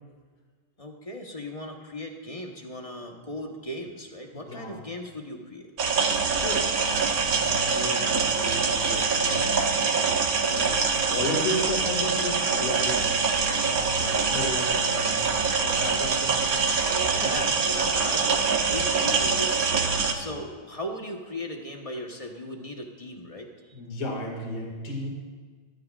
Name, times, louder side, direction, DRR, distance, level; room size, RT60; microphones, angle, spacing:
voice 1, 0.8-5.7 16.8-23.5, left 1 dB, 25° left, 2 dB, 0.9 m, -37 dB
voice 2, 4.3-4.8 6.4-9.7 10.4-13.3 13.7-15.2 15.6-16.6 17.2-17.6 20.1-20.4 23.7-25.1, left 1 dB, 75° left, 0 dB, 3.0 m, -34 dB
sound 1, 5.8-20.1, right 5 dB, 50° right, 1.3 m, -24 dB
20.5 x 13.5 x 2.5 m, 1.5 s
omnidirectional pair, 2.2 m